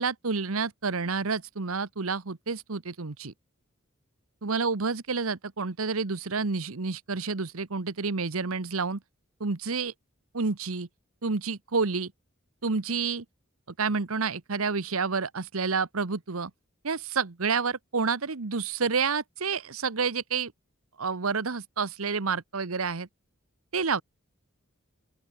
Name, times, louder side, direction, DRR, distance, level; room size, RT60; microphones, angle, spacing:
voice 1, 0.0-3.3 4.4-9.0 9.4-9.9 10.3-10.9 11.2-12.1 12.6-13.2 13.8-16.5 16.8-20.5 21.0-23.1 23.7-24.0, right 4 dB, 90° right, 1.1 m, -29 dB
open air
head